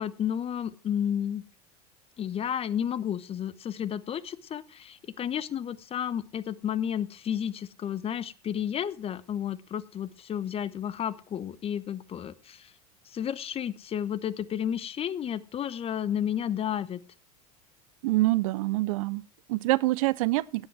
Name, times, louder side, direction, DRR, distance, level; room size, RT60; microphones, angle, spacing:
voice 1, 0.0-1.4 2.2-12.7 13.1-17.0, left 9 dB, 30° left, 0.9 m, -32 dB
voice 2, 18.0-20.7, right 19 dB, 60° right, 0.5 m, -26 dB
17.0 x 7.8 x 4.7 m
hypercardioid pair, 80°, 20 cm